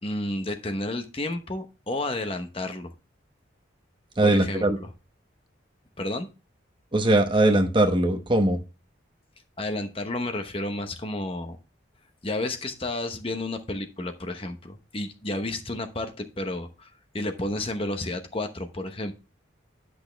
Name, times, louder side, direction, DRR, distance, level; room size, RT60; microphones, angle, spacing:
voice 1, 0.0-2.9 4.2-4.9 6.0-6.3 9.6-11.6 12.2-16.9 17.1-19.1, left 2 dB, 30° left, 6 dB, 0.9 m, -31 dB
voice 2, 4.2-4.8 6.9-8.6, right 1 dB, 25° right, 6 dB, 0.9 m, -20 dB
10.5 x 6.2 x 3.3 m, 0.29 s
head